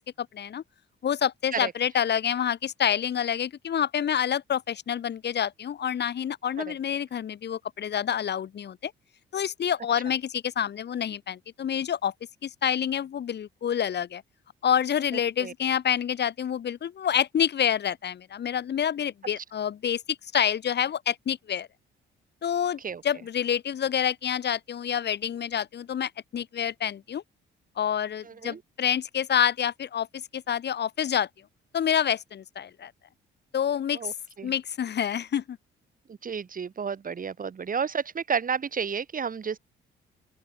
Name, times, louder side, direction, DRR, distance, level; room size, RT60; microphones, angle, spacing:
voice 1, 0.2-0.6 1.0-8.9 9.3-12.1 12.4-14.2 14.6-21.7 22.4-27.2 27.8-31.3 31.7-32.9 33.5-34.1 34.4-35.6, left 9 dB, 60° left, 3.7 m, -27 dB
voice 2, 28.2-28.6 33.9-34.1 34.4-34.5 36.1-39.6, right 6 dB, 45° right, 6.9 m, -31 dB
open air
cardioid pair, 90°, 20 cm